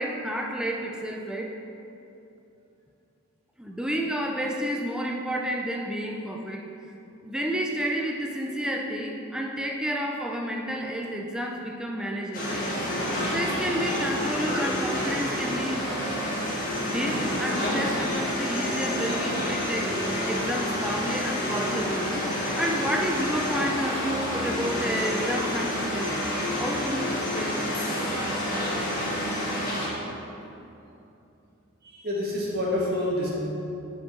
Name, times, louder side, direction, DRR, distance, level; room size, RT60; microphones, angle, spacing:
voice 1, 0.0-1.5 3.6-6.6 7.2-12.6 12.9-13.0 13.3-15.8 16.8-22.2 22.6-26.2 26.6-27.6, equal, 5° right, 1 dB, 0.4 m, -30 dB
sound 1, 12.3-29.9, left 1 dB, 40° left, 1.6 m, -28 dB
voice 2, 31.8-33.3, left 1 dB, 45° right, -4 dB, 1.5 m, -28 dB
7.4 x 5.3 x 3.8 m, 2.8 s
head